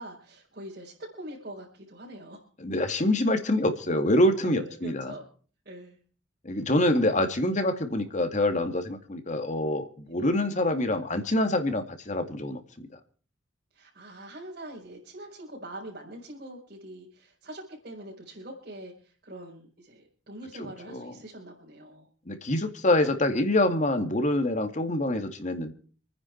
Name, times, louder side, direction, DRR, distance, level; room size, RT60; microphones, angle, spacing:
voice 1, 0.0-2.4 4.4-5.3 5.6-6.0 10.1-10.2 13.7-22.1, right 1 dB, 50° right, -5 dB, 4.9 m, -43 dB
voice 2, 2.6-5.1 6.4-12.6 20.6-21.1 22.3-25.7, left 1 dB, 40° left, 7 dB, 2.2 m, -26 dB
27.5 x 9.9 x 4.6 m, 0.42 s
head